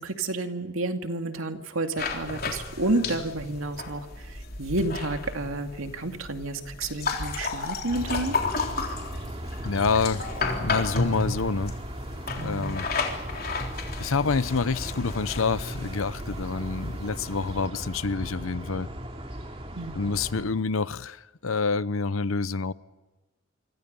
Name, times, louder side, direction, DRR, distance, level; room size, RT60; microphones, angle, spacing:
voice 1, 0.0-8.4 12.4-12.7 19.8-19.9, right 2 dB, 85° right, 2.3 m, -30 dB
sound 1, 2.0-17.7, left 3 dB, 45° left, 3.6 m, -33 dB
sound 2, 7.9-20.5, right 1 dB, 30° right, 2.7 m, -37 dB
voice 2, 9.6-10.2 10.6-11.7 12.4-12.9 14.0-18.9 20.0-22.7, left 4 dB, 85° left, 0.8 m, -27 dB
27.5 x 25.5 x 5.5 m
head